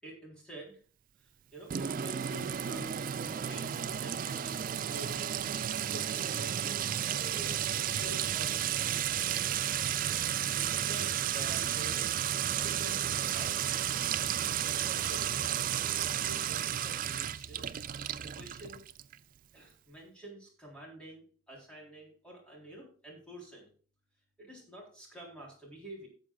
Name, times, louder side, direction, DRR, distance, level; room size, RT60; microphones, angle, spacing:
voice 1, 0.0-0.8 1.2-5.3 5.9-9.2 10.0-12.1 12.4-13.7 14.6-15.6 16.0-18.8 19.5-23.7 24.4-26.1, right 1 dB, 5° left, -4 dB, 3.7 m, -49 dB
Sink (filling or washing) / Trickle dribble / Fill (with liquid), 1.7-19.1, right 10 dB, 45° right, 0.3 m, -32 dB
17.5 x 7.4 x 2.4 m, 0.42 s
head